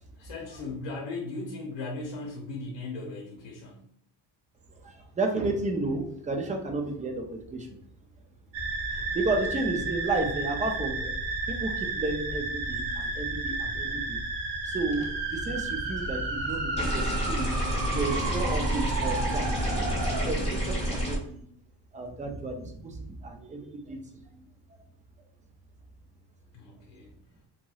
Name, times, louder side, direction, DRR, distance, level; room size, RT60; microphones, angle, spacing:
voice 1, 0.2-3.9 26.5-27.1, left 3 dB, 90° left, 0 dB, 0.7 m, -37 dB
voice 2, 4.7-7.8 8.9-11.1 11.5-14.2 14.6-17.6 17.9-20.0 20.2-21.4 21.9-24.0 24.3-24.4, right 2 dB, 20° right, 3 dB, 0.3 m, -32 dB
sound 1, 8.5-20.3, right 3 dB, 85° right, 0.8 m, -32 dB
sound 2, 16.8-21.2, equal, 15° left, 0.9 m, -29 dB
2.9 x 2.8 x 2.3 m, 0.65 s
cardioid pair, 150°, 43 cm